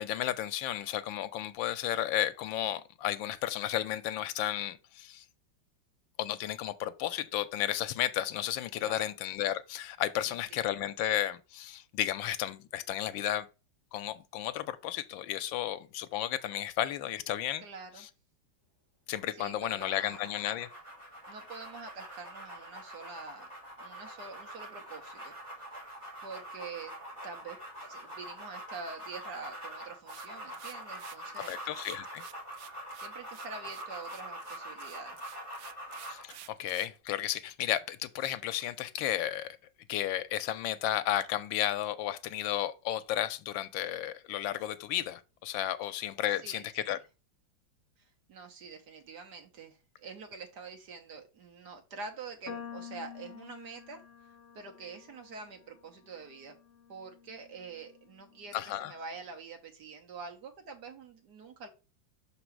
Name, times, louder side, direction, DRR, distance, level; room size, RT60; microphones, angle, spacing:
voice 1, 0.0-5.2 6.2-13.5 13.9-17.6 18.0-18.1 19.1-20.7 31.3-32.2 36.1-39.6 39.9-47.0 58.5-58.9, left 12 dB, 85° left, 1.3 m, -33 dB
voice 2, 8.8-9.1 10.3-10.6 17.6-18.1 19.3-20.2 21.3-23.5 23.8-25.7 26.2-26.9 27.2-31.6 33.0-35.2 46.4-47.0 48.0-54.0 54.5-56.6 56.9-61.7, right 4 dB, 60° right, 1.5 m, -46 dB
sound 1, 19.8-36.3, right 1 dB, 15° right, 4.2 m, -45 dB
sound 2, 30.1-37.0, right 11 dB, 85° right, 0.7 m, -51 dB
sound 3, 52.5-58.8, left 7 dB, 50° left, 1.0 m, -49 dB
6.0 x 3.8 x 4.5 m
omnidirectional pair, 2.1 m